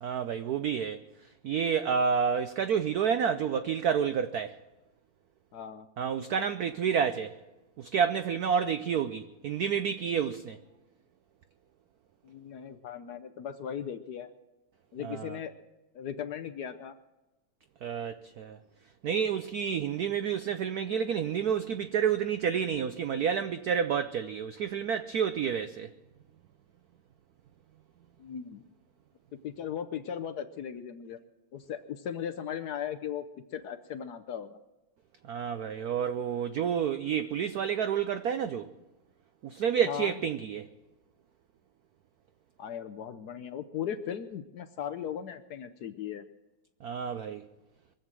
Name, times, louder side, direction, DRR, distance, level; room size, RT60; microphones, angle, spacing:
voice 1, 0.0-1.0 1.4-4.6 6.0-7.4 7.8-10.6 15.0-15.4 17.8-18.6 19.0-25.9 35.2-38.7 39.4-40.7 46.8-47.4, right 7 dB, 90° right, 0.8 m, -29 dB
voice 2, 5.5-5.9 12.2-14.3 14.9-15.5 15.9-16.9 28.2-28.6 29.4-31.2 31.5-33.2 33.5-34.6 39.9-40.1 42.6-46.2, left 9 dB, 70° left, 0.9 m, -37 dB
23.5 x 7.9 x 7.4 m
omnidirectional pair, 2.4 m